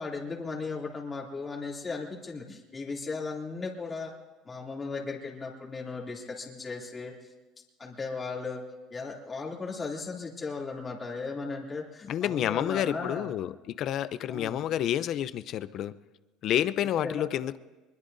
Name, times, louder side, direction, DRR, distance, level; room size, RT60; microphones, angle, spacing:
voice 1, 0.0-4.1 4.4-7.1 7.8-8.6 8.9-13.3 14.3-14.6 17.0-17.2, left 4 dB, 25° left, -3 dB, 2.9 m, -36 dB
voice 2, 12.1-13.5 13.8-15.9 16.4-17.6, left 11 dB, 55° left, 14 dB, 0.6 m, -29 dB
23.5 x 22.0 x 2.7 m, 1.2 s
supercardioid pair, 105°, 0 cm